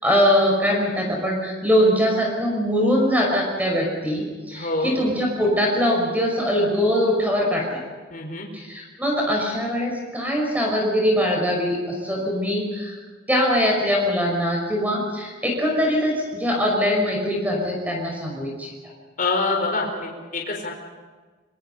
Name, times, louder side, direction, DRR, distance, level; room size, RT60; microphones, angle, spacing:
voice 1, 0.0-7.8 8.5-13.0 13.3-18.7, equal, 10° right, 0 dB, 5.7 m, -22 dB
voice 2, 4.5-4.9 8.1-8.5 19.2-20.7, left 3 dB, 45° left, 1 dB, 4.4 m, -25 dB
26.0 x 24.0 x 5.6 m, 1.4 s
head